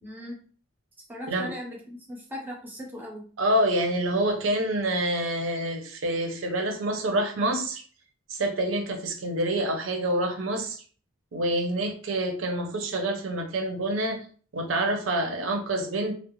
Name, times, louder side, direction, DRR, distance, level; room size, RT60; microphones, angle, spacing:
voice 1, 0.0-0.4 1.1-3.3, equal, 10° right, -2 dB, 0.6 m, -38 dB
voice 2, 3.4-7.8 8.3-10.8 11.3-14.2 14.5-16.1, right 1 dB, 75° right, 4 dB, 0.6 m, -27 dB
2.3 x 2.0 x 3.0 m, 0.43 s
head